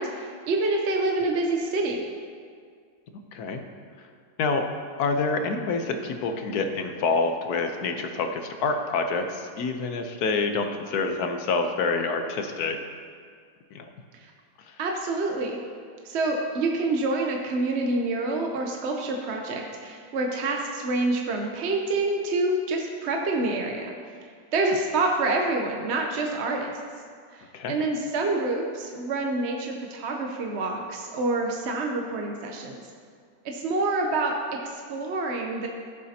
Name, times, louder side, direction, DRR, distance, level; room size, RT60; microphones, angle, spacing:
voice 1, 0.0-2.0 14.1-14.2 14.8-15.6 16.0-23.9 24.5-26.7 27.3-32.8 33.4-35.7, right 2 dB, 55° right, 1 dB, 0.9 m, -27 dB
voice 2, 5.0-12.8 13.7-13.8 14.7-14.8 24.6-24.7 27.5-27.8, left 4 dB, 75° left, 5 dB, 1.3 m, -27 dB
15.5 x 7.4 x 2.8 m, 2.1 s
omnidirectional pair, 1.6 m